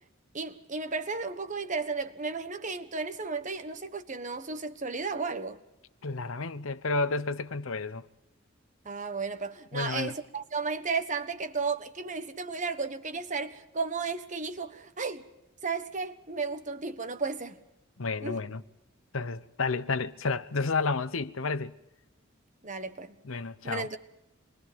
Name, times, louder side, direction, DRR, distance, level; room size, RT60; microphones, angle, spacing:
voice 1, 0.3-5.6 8.8-15.3 15.6-17.6 18.2-18.4 22.6-23.2 23.6-24.0, right 4 dB, 35° right, 1.3 m, -34 dB
voice 2, 6.0-8.0 9.7-10.2 18.0-18.6 19.1-21.7 23.2-23.9, left 4 dB, 75° left, 0.9 m, -31 dB
27.5 x 22.0 x 5.3 m
head